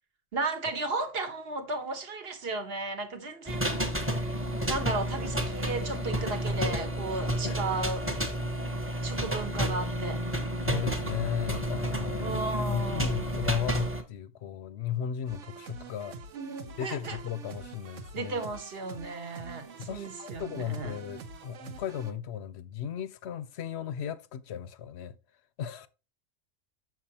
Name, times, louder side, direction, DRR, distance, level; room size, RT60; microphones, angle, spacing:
voice 1, 0.3-4.2 4.7-8.0 9.0-10.2 12.2-13.3 16.3-17.2 18.1-20.9, right 3 dB, 50° right, 1.3 m, -34 dB
sound 1, 3.5-14.0, equal, 10° right, 1.0 m, -31 dB
voice 2, 10.7-16.2 16.8-18.4 19.8-25.2 25.6-25.9, left 9 dB, 65° left, 0.8 m, -36 dB
sound 2, 15.3-22.1, right 4 dB, 70° right, 1.1 m, -46 dB
6.7 x 6.2 x 2.8 m
omnidirectional pair, 1.3 m